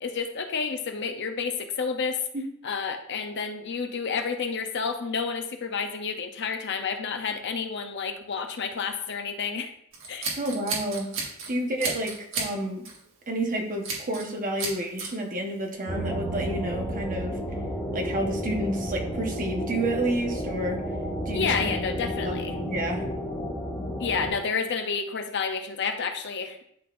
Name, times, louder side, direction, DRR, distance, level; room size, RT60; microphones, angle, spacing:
voice 1, 0.0-2.2 2.6-9.7 10.1-10.3 21.3-22.5 24.0-26.6, left 5 dB, 55° left, 5 dB, 0.7 m, -30 dB
Scissors, 9.9-11.5 11.8-12.5 12.8-13.1 13.8-14.3 14.6-15.1, right 4 dB, 60° right, 1.7 m, -32 dB
voice 2, 10.4-11.1 11.5-12.8 13.3-17.4 17.9-20.8 21.3-23.0, right 1 dB, 40° right, 1 dB, 1.1 m, -30 dB
sound 1, 15.9-24.3, equal, 10° left, 1.2 m, -31 dB
11.0 x 3.9 x 2.5 m, 0.70 s
head